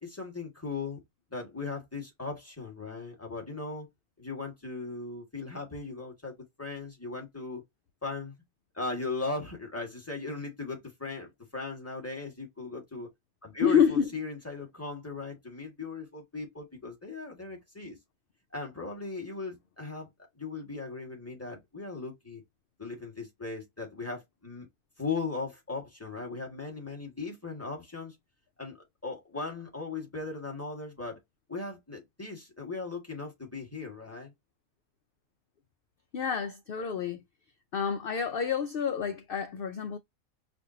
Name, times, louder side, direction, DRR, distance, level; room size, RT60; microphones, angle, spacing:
voice 1, 0.0-1.0 1.3-3.9 4.2-7.6 8.0-8.3 8.7-13.1 13.4-18.0 18.5-20.1 20.4-22.4 22.8-24.7 25.0-28.1 28.6-28.8 29.0-31.2 31.5-34.3, left 3 dB, 10° left, 1.5 m, -38 dB
voice 2, 13.6-14.1 36.1-37.2 37.7-40.0, left 7 dB, 80° left, 0.5 m, -28 dB
5.2 x 2.5 x 2.6 m
omnidirectional pair, 1.5 m